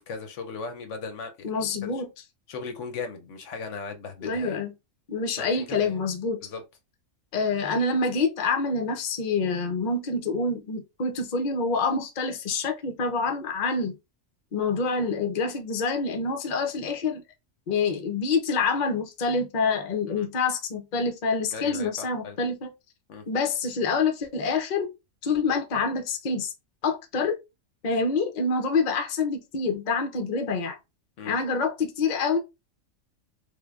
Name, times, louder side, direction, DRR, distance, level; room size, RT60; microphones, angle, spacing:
voice 1, 0.0-1.5 1.8-2.0 2.5-4.6 5.4-6.0 6.4-6.6 20.2-20.3 21.5-22.4 23.1-23.2 31.2-31.4, left 4 dB, 70° left, 0.9 m, -37 dB
voice 2, 1.4-2.1 4.2-4.7 5.1-6.4 7.3-14.0 14.5-17.2 17.7-22.7 23.3-24.9 25.2-26.5 26.8-27.4 27.8-30.8 31.2-32.4, left 4 dB, 45° left, 0.6 m, -26 dB
3.4 x 3.4 x 2.4 m
omnidirectional pair, 1.4 m